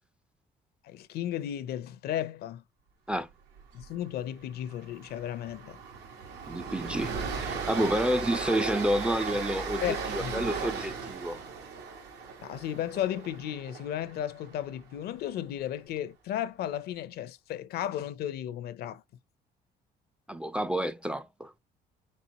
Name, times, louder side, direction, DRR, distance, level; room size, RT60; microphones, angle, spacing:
voice 1, 0.8-2.6 3.7-5.8 9.8-10.3 12.4-19.0, left 11 dB, 70° left, 0.6 m, -34 dB
Train, 3.6-3.9 4.1-4.3 4.7-14.8, right 5 dB, 90° right, 1.5 m, -37 dB
voice 2, 6.5-11.4 20.3-21.5, equal, 5° right, 0.3 m, -29 dB
4.2 x 4.0 x 2.8 m
cardioid pair, 110°, 17 cm